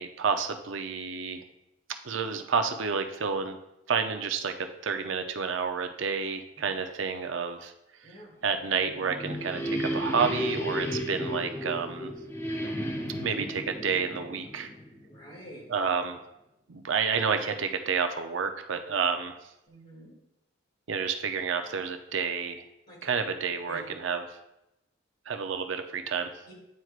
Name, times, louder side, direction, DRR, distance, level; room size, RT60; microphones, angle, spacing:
voice 1, 0.0-1.4 2.0-3.6 3.9-7.7 8.4-12.1 13.2-14.7 15.7-16.2 16.7-19.4 20.9-22.6 23.0-24.3 25.3-26.3, right 5 dB, 75° right, 7 dB, 0.6 m, -30 dB
voice 2, 8.0-8.3 15.0-15.6 19.7-20.1 22.9-23.1 23.7-23.8 26.5-26.6, equal, 50° left, -5 dB, 2.4 m, -47 dB
sound 1, 8.7-15.4, equal, 10° left, 0.4 m, -33 dB
9.4 x 4.5 x 2.4 m, 0.88 s
head